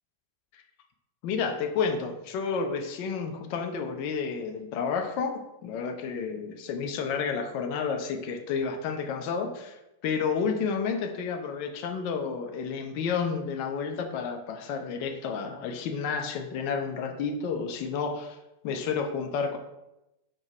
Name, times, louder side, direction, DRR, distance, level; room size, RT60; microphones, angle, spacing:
voice 1, 1.2-18.4 18.6-19.6, left 5 dB, 45° left, 5 dB, 0.5 m, -31 dB
4.5 x 2.2 x 4.3 m, 0.92 s
figure-of-eight pair, 90°, 0 cm